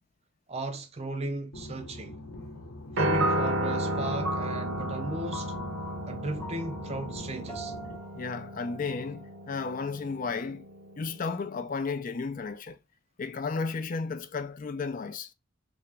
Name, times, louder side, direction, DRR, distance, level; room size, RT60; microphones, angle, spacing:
voice 1, 0.5-2.2 2.9-5.5 6.1-7.7, right 2 dB, 30° right, 0.5 m, -35 dB
sound 1, 1.5-8.0, left 2 dB, 80° left, 0.9 m, -44 dB
Piano, 3.0-11.2, right 1 dB, 65° right, 0.8 m, -33 dB
sound 2, 3.2-9.7, right 2 dB, 10° left, 0.8 m, -39 dB
voice 2, 8.1-10.6 11.0-12.8 13.2-15.3, left 4 dB, 40° left, 0.4 m, -33 dB
3.5 x 2.9 x 3.2 m
head